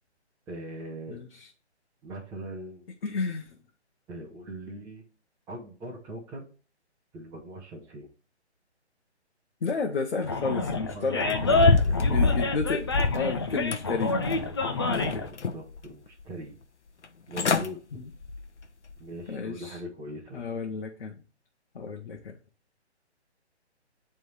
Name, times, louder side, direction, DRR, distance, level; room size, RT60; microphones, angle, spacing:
voice 1, 0.5-1.2 2.0-2.9 4.1-5.0 5.5-6.4 7.1-8.1 10.7-12.4 14.8-16.6 17.3-17.8 19.0-20.4, right 1 dB, 10° right, -5 dB, 1.1 m, -41 dB
voice 2, 3.0-3.5 9.6-11.4 11.9-12.8 13.1-14.2 14.9-15.1 17.9-18.0 19.3-19.8 20.3-21.1 21.7-22.2, left 4 dB, 55° left, 2 dB, 1.2 m, -31 dB
Animal, 10.2-15.3, left 2 dB, 25° left, 0.5 m, -27 dB
sound 1, 11.3-13.3 13.7-14.5 14.9-15.8 16.2-16.3 17.0-17.1 17.3-17.7 18.1-18.4 18.9-19.0, left 4 dB, 80° left, 1.0 m, -26 dB
10.5 x 3.7 x 3.3 m, 0.36 s
figure-of-eight pair, 150°, 34 cm